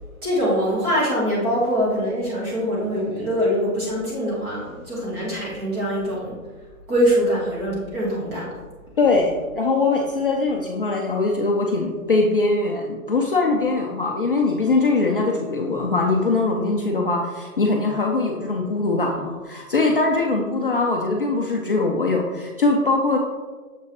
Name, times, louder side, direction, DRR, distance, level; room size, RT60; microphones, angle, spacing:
voice 1, 0.2-6.4 6.9-8.5 20.3-20.5, equal, 15° right, -6 dB, 1.5 m, -23 dB
voice 2, 9.0-23.2, left 3 dB, 40° left, 0 dB, 0.5 m, -21 dB
6.8 x 5.5 x 3.0 m, 1.3 s
hypercardioid pair, 165°, 43 cm